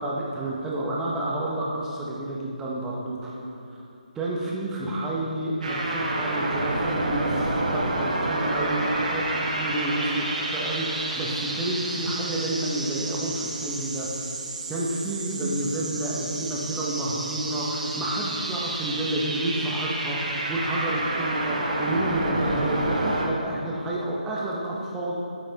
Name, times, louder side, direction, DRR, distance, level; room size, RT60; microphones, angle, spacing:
voice 1, 0.0-3.3 4.2-14.1 14.7-25.1, right 1 dB, 10° right, -4 dB, 0.8 m, -29 dB
sound 1, 5.6-23.3, right 2 dB, 55° right, 0.9 m, -29 dB
8.9 x 5.1 x 2.9 m, 2.7 s
figure-of-eight pair, 155°, 5 cm